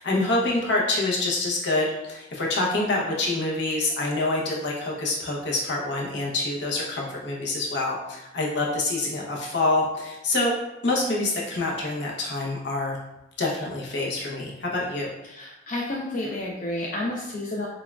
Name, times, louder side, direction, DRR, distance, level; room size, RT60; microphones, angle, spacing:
voice 1, 0.0-10.5 10.8-13.0 13.4-15.1, left 2 dB, 65° left, -3 dB, 0.8 m, -26 dB
voice 2, 15.2-17.7, left 1 dB, 45° left, -3 dB, 0.5 m, -30 dB
5.9 x 2.3 x 2.3 m, 0.95 s
head